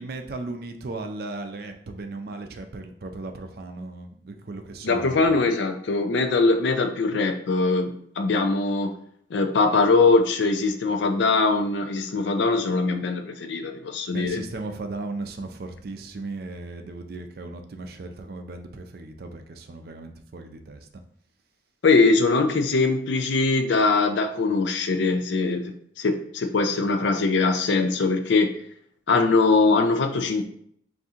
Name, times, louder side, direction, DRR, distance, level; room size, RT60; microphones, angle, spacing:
voice 1, 0.0-5.4 14.1-20.9, right 2 dB, 55° right, 6 dB, 0.5 m, -36 dB
voice 2, 4.8-8.9 9.3-14.4 21.8-25.6 26.0-28.5 29.1-30.4, left 3 dB, 75° left, 7 dB, 0.5 m, -22 dB
4.2 x 2.6 x 3.6 m, 0.67 s
head